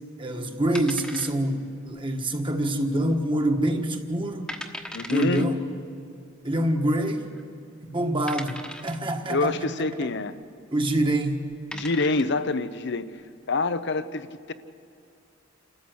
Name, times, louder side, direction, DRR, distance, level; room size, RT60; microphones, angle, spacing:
voice 1, 0.2-4.5 5.1-5.6 6.4-7.3 7.8-9.5 10.7-11.4, right 1 dB, 25° right, 1.6 m, -25 dB
sound 1, 0.7-1.7 2.0-2.1 2.7-3.1 3.5-3.6 4.1-4.2 4.5-5.4 6.5-6.6 7.3-7.4 8.3-9.1 10.9-11.1 11.5-12.4, equal, 5° left, 1.3 m, -38 dB
voice 2, 4.9-5.5 9.3-10.3 11.7-13.1 13.5-14.5, left 3 dB, 60° left, 0.9 m, -26 dB
29.0 x 14.0 x 8.1 m
head